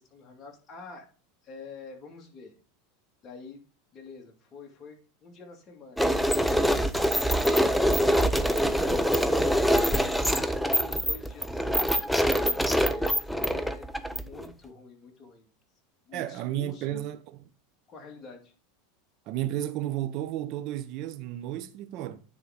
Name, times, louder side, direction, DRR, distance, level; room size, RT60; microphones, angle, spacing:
voice 1, 0.1-1.1 1.4-2.6 3.2-3.6 3.9-6.1 6.4-11.9 12.6-15.5 16.1-17.1 17.9-18.5, left 3 dB, 30° left, 2.4 m, -47 dB
sound 1, 6.0-14.5, equal, ahead, 0.6 m, -24 dB
voice 2, 16.1-17.2 19.3-22.2, right 13 dB, 50° right, 0.9 m, -32 dB
9.6 x 4.0 x 5.0 m
supercardioid pair, 120°, 0 cm